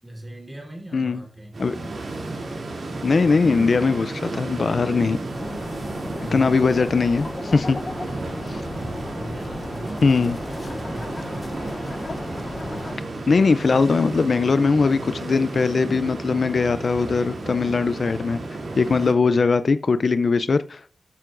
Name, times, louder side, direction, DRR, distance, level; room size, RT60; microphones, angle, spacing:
voice 1, 0.0-1.6 6.2-6.9 8.1-8.8 9.2-11.5 19.2-19.4, right 1 dB, 15° right, 3.7 m, -40 dB
sound 1, 1.5-19.1, right 2 dB, 70° right, 2.8 m, -33 dB
voice 2, 3.0-5.2 6.3-7.8 10.0-10.4 13.3-18.4 18.8-20.9, left 4 dB, 60° left, 0.4 m, -20 dB
sound 2, 5.3-13.0, left 2 dB, 35° left, 0.7 m, -35 dB
12.5 x 9.2 x 2.5 m
wide cardioid pair, 100°, 0 cm